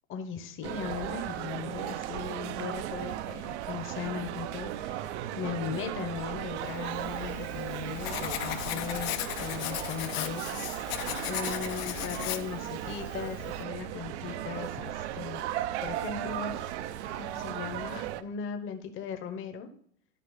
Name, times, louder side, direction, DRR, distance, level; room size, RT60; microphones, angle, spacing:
voice 1, 0.1-10.6 11.2-15.5 15.8-16.7 17.2-19.7, left 7 dB, 30° left, 7 dB, 1.2 m, -38 dB
sound 1, 0.6-18.2, right 12 dB, 60° right, 0.8 m, -36 dB
Writing, 6.9-13.6, left 12 dB, 50° left, 0.9 m, -37 dB
12.0 x 4.8 x 4.0 m, 0.63 s
hypercardioid pair, 110°, 39 cm